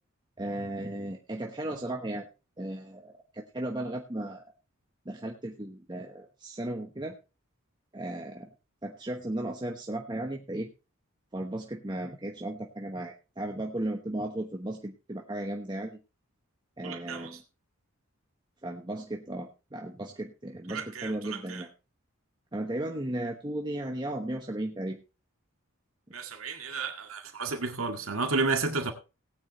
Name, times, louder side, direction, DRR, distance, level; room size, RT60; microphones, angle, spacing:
voice 1, 0.4-2.3 2.6-4.4 5.0-7.2 7.9-8.5 8.8-10.7 11.3-16.0 16.8-17.4 18.6-21.7 22.5-25.0, right 1 dB, 20° right, 1.1 m, -35 dB
voice 2, 16.8-17.4 20.7-21.6 26.1-28.9, right 3 dB, 85° right, 2.0 m, -32 dB
18.0 x 9.5 x 3.1 m
head